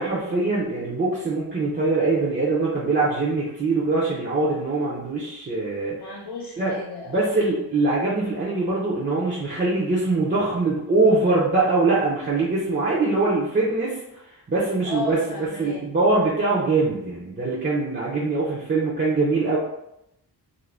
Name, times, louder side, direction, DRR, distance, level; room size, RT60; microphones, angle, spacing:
voice 1, 0.0-6.0 6.6-6.8 7.1-15.2 15.6-19.6, right 3 dB, 30° right, -7 dB, 0.5 m, -23 dB
voice 2, 5.9-7.3 14.8-15.8, left 2 dB, 70° left, -3 dB, 0.6 m, -34 dB
2.5 x 2.1 x 3.2 m, 0.81 s
wide cardioid pair, 150°, 40 cm